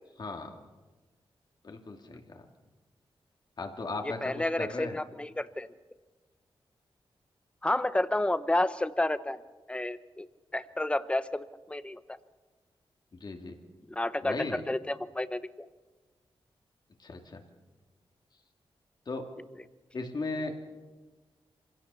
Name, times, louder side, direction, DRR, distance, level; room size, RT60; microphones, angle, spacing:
voice 1, 0.2-0.6 1.6-2.4 3.6-4.9 13.2-13.6 14.2-14.6 17.0-17.4 19.1-19.3 19.9-20.5, left 3 dB, 45° left, 3 dB, 2.5 m, -37 dB
voice 2, 4.2-5.7 7.6-9.4 9.7-10.3 10.5-12.2 13.9-15.7, left 1 dB, 10° left, 13 dB, 0.8 m, -30 dB
26.0 x 16.5 x 6.9 m, 1.3 s
wide cardioid pair, 105°, 10 cm